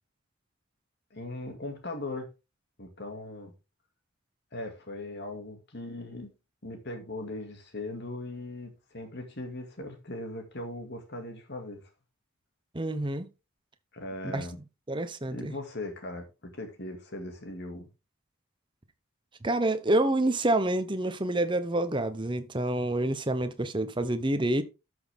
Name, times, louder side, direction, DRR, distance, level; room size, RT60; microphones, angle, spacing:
voice 1, 1.1-2.3 2.8-3.5 4.5-6.3 6.6-11.9 13.9-14.6 15.3-17.9, left 2 dB, 50° left, 2.2 m, -39 dB
voice 2, 12.7-13.3 14.3-14.5 14.9-15.5 19.4-24.6, right 1 dB, 20° right, 0.8 m, -27 dB
12.5 x 6.3 x 3.5 m
head